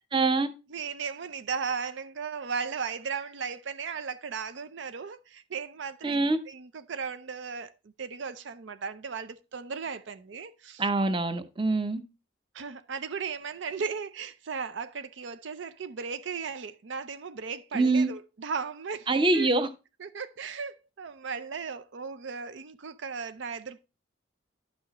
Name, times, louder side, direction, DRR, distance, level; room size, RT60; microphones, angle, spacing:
voice 1, 0.1-0.5 6.0-6.4 10.8-12.0 17.7-18.1 19.1-19.7, right 3 dB, 25° right, 0.7 m, -24 dB
voice 2, 0.7-6.2 6.5-10.8 12.5-19.5 20.0-23.8, right 5 dB, 70° right, 0.5 m, -36 dB
10.5 x 6.2 x 2.9 m
head